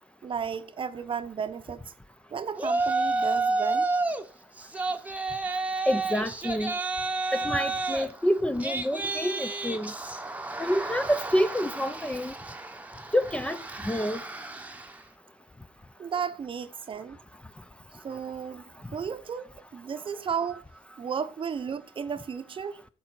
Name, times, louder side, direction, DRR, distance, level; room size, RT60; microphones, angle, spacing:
voice 1, 0.2-1.9 2.3-3.9 16.0-17.2 18.0-20.6 21.0-22.8, right 7 dB, 35° right, 0.9 m, -34 dB
Yell, 2.6-4.2 4.6-15.0, right 3 dB, 10° right, 1.1 m, -31 dB
voice 2, 5.9-6.8 7.3-9.9 10.6-12.3 13.1-14.2, equal, 5° left, 0.7 m, -27 dB
14.5 x 7.1 x 4.4 m
cardioid pair, 115°, 15 cm